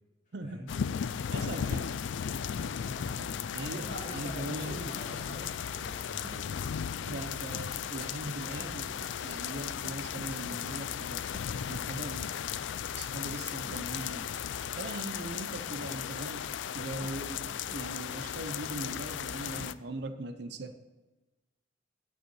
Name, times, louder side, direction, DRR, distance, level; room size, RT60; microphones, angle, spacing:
voice 1, 0.3-0.7 1.3-1.9 3.5-4.9 7.0-11.3 11.7-12.7 12.9-14.3 14.7-20.9, right 2 dB, 60° right, 9 dB, 0.6 m, -40 dB
sound 1, 0.7-19.7, left 8 dB, 70° left, 0.3 m, -36 dB
sound 2, 1.9-19.8, right 1 dB, 75° right, 1.3 m, -55 dB
voice 2, 2.8-6.6, equal, 40° left, -3 dB, 3.0 m, -44 dB
9.0 x 5.6 x 8.0 m, 1.2 s
head